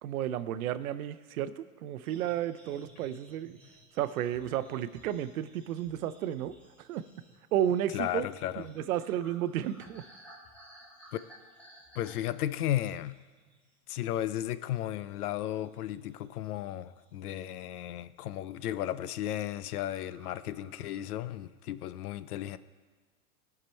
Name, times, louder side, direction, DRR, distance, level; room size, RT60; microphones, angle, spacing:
voice 1, 0.0-3.6 3.9-7.1 7.5-8.3 8.6-10.0, right 11 dB, 70° right, 0.6 m, -32 dB
sound 1, 2.0-13.7 14.1-14.3 14.7-16.3 16.6-17.3 17.8-18.1 18.4-18.7 19.0-19.1 19.4-19.5 19.8-21.1, equal, 5° left, 1.3 m, -58 dB
voice 2, 7.9-8.6 12.0-13.2 13.9-22.6, left 12 dB, 80° left, 0.6 m, -34 dB
14.5 x 5.8 x 4.4 m
hypercardioid pair, 140°, 44 cm